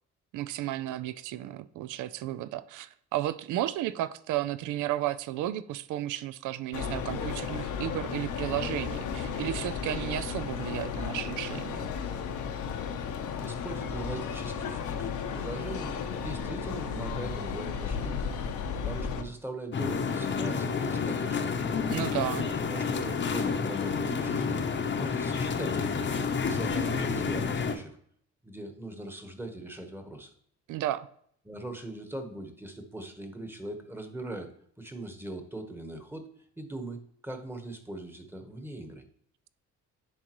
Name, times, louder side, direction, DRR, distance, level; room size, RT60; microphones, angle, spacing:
voice 1, 0.3-11.9 21.9-22.5 30.7-31.1, right 13 dB, 80° right, 16 dB, 0.5 m, -33 dB
sound 1, 6.7-19.2, left 6 dB, 80° left, 0.9 m, -34 dB
voice 2, 13.4-18.3 18.8-21.6 22.6-24.6 24.9-28.0 28.4-30.3 31.4-34.5 34.8-36.3 36.6-37.0 37.2-39.0, right 2 dB, 5° right, 6 dB, 1.1 m, -40 dB
sound 2, 19.7-27.7, left 5 dB, 40° left, 0.8 m, -29 dB
10.0 x 3.8 x 3.0 m, 0.64 s
cardioid pair, 90°, 30 cm